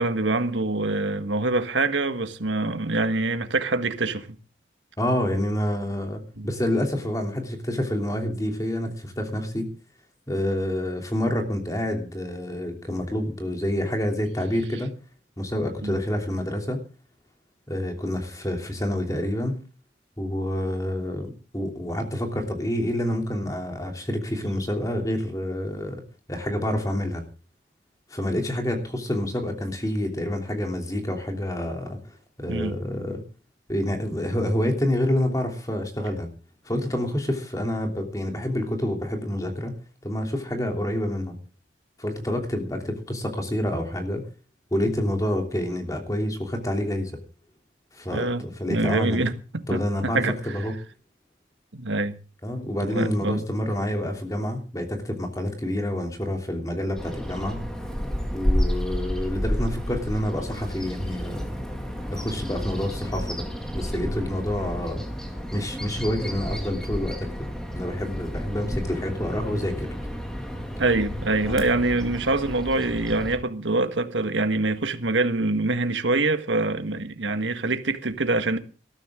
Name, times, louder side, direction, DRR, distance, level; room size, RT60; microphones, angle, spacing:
voice 1, 0.0-4.3 6.4-6.5 15.8-16.0 32.5-32.8 48.1-50.3 51.7-52.2 52.8-53.4 70.8-78.6, right 2 dB, 85° right, 1.6 m, -25 dB
voice 2, 5.0-9.7 10.3-15.0 15.4-16.8 17.7-19.6 20.2-26.0 26.3-27.2 28.1-33.2 33.7-36.3 36.6-39.7 40.0-41.4 42.0-44.2 44.7-47.1 47.9-49.2 49.7-50.7 52.4-57.6 58.3-61.6 62.1-63.4 63.7-65.0 65.5-67.3 67.7-69.9 71.5-71.6, left 1 dB, 20° left, 3.1 m, -28 dB
Bird vocalization bird call bird song, 57.0-73.4, equal, 5° left, 2.3 m, -31 dB
20.0 x 13.0 x 3.7 m
head